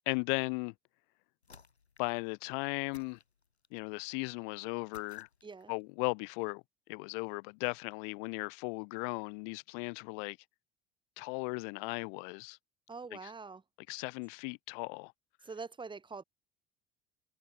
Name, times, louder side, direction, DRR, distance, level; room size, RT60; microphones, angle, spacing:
voice 1, 0.1-0.7 2.0-3.2 3.7-5.3 5.7-6.6 6.9-10.4 11.2-12.6 13.9-15.1, left 38 dB, 50° left, 0.5 m, -36 dB
sound 1, 1.4-2.2 2.9-3.8 4.9-5.8, left 5 dB, 85° left, 1.0 m, -59 dB
voice 2, 12.9-13.6 15.4-16.2, right 4 dB, 15° right, 1.9 m, -44 dB
figure-of-eight pair, 65°, 32 cm